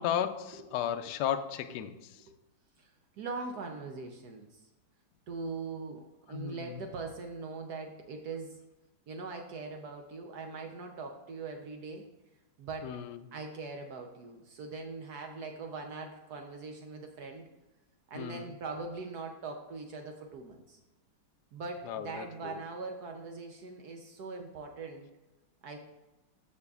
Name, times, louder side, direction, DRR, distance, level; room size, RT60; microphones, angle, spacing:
voice 1, 0.0-2.2 6.3-6.8 12.8-13.2 18.1-18.5 21.8-22.5, left 9 dB, 80° left, 9 dB, 0.9 m, -35 dB
voice 2, 2.8-4.7 5.3-8.6 9.1-12.1 12.6-13.0 13.3-17.5 18.1-20.8 21.5-25.1 25.6-25.8, right 4 dB, 65° right, 3 dB, 1.0 m, -41 dB
13.5 x 5.2 x 2.4 m, 1.0 s
omnidirectional pair, 2.3 m